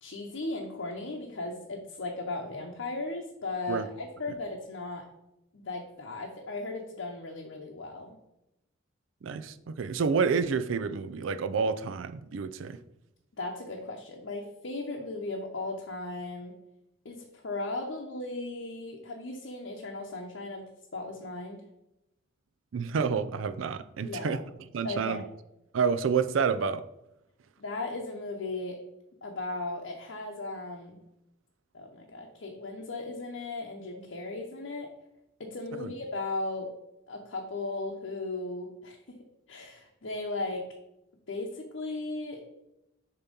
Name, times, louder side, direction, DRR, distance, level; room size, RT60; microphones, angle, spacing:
voice 1, 0.0-5.1 5.5-8.2 13.4-16.5 17.0-21.6 24.0-24.4 24.8-25.3 27.6-28.8 29.2-31.0 31.7-34.9 35.4-36.7 37.1-40.7 41.3-42.4, left 2 dB, 65° left, 0.8 m, -37 dB
voice 2, 9.2-12.8 22.7-24.4 24.7-25.2 25.7-26.8 35.8-35.9, right 5 dB, 75° right, 0.4 m, -29 dB
7.0 x 2.9 x 5.2 m
head